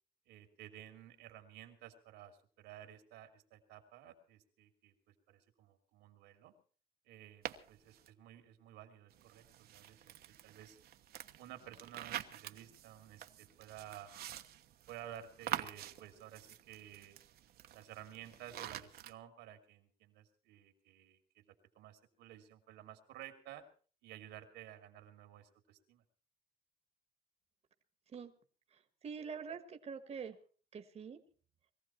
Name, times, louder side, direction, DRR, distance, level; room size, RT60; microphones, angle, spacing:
voice 1, 0.3-6.5 7.0-10.8 11.4-14.1 14.9-17.2 17.7-23.6 24.0-26.0, right 11 dB, 90° right, 7 dB, 2.9 m, -54 dB
sound 1, 7.5-8.1 9.1-19.1, right 11 dB, 65° right, 1.2 m, -47 dB
voice 2, 28.7-30.4 30.7-31.2, right 6 dB, 40° right, 8 dB, 1.4 m, -45 dB
21.5 x 15.0 x 4.5 m, 0.42 s
cardioid pair, 110°, 17 cm